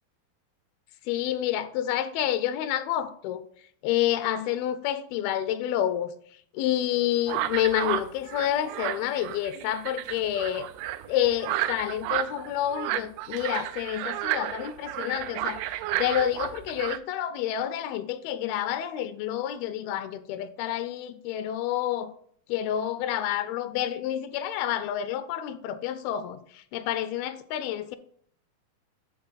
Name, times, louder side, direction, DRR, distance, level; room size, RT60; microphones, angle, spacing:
voice 1, 1.1-3.4 3.8-6.1 6.5-10.7 11.1-22.1 22.5-28.0, left 11 dB, 85° left, 2.4 m, -29 dB
sound 1, 7.3-17.0, right 13 dB, 85° right, 2.5 m, -32 dB
12.0 x 4.0 x 4.0 m
omnidirectional pair, 4.3 m